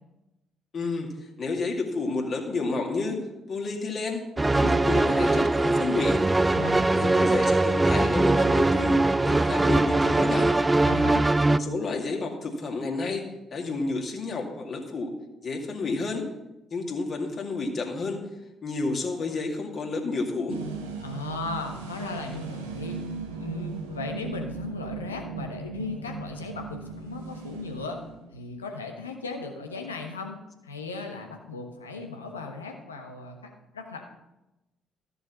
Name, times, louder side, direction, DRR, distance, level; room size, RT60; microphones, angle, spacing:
voice 1, 0.7-3.2 3.5-4.2 4.5-6.2 6.9-9.0 9.2-10.5 11.6-15.1 15.4-16.2 16.7-18.3 18.6-20.6, left 3 dB, 45° left, 2 dB, 2.3 m, -30 dB
sound 1, 4.4-11.6, right 2 dB, 20° right, 0.5 m, -22 dB
voice 2, 6.5-6.9 10.8-11.2 21.0-23.0 23.3-28.0 28.3-30.4 30.6-34.1, left 4 dB, 85° left, 3 dB, 1.2 m, -37 dB
sound 2, 20.5-28.4, right 5 dB, 80° right, 1.1 m, -37 dB
14.0 x 7.0 x 5.7 m, 0.97 s
figure-of-eight pair, 45°, 0 cm